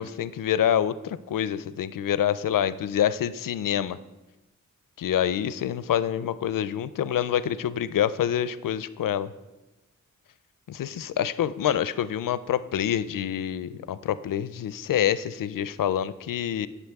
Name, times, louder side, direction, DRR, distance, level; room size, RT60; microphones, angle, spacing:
voice 1, 0.0-4.0 5.0-9.3 10.7-16.7, left 10 dB, 85° left, 15 dB, 0.5 m, -26 dB
16.0 x 6.9 x 3.5 m, 1.1 s
cardioid pair, 65°, 32 cm